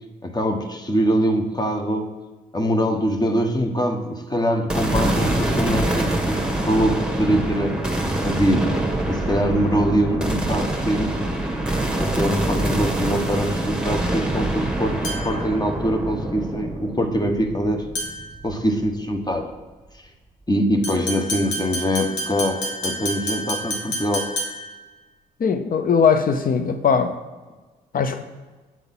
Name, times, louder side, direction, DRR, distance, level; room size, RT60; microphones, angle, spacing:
voice 1, 0.2-2.1 2.5-7.8 8.2-8.7 9.1-11.2 12.0-17.9 18.4-19.5 20.5-24.3, equal, 20° left, 4 dB, 1.1 m, -23 dB
sound 1, 4.7-19.0, right 1 dB, 5° right, 1.4 m, -25 dB
sound 2, 15.0-15.5 17.9-18.4 20.8-24.8, equal, 70° left, 1.5 m, -29 dB
voice 2, 25.4-27.2 27.9-28.2, left 6 dB, 45° left, 8 dB, 0.7 m, -20 dB
7.5 x 3.8 x 5.4 m, 1.3 s
hypercardioid pair, 45°, 20 cm